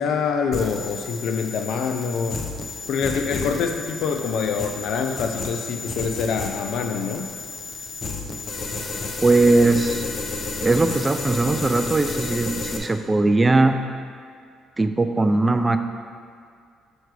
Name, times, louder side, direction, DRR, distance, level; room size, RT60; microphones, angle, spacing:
voice 1, 0.0-2.4 2.9-7.3, left 5 dB, 75° left, 5 dB, 0.5 m, -25 dB
sound 1, 0.5-12.8, left 3 dB, 45° left, 0.8 m, -32 dB
voice 2, 9.2-10.0 10.6-13.8 14.8-15.8, right 2 dB, 20° right, 8 dB, 0.5 m, -19 dB
6.4 x 4.6 x 4.8 m, 2.2 s
supercardioid pair, 75°, 0 cm